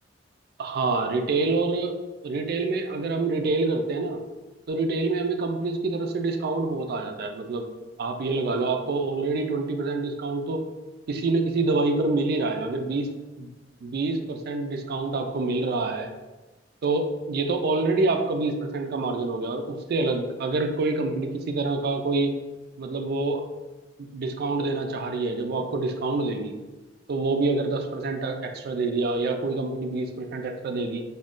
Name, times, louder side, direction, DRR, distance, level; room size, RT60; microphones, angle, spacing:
voice 1, 0.6-2.0 2.2-4.2 4.7-7.7 8.0-10.6 11.1-13.1 13.4-13.5 13.8-16.1 16.8-22.3 22.8-23.4 24.0-26.5 27.1-31.0, right 3 dB, 55° right, 5 dB, 0.3 m, -26 dB
2.4 x 2.2 x 3.6 m, 1.2 s
head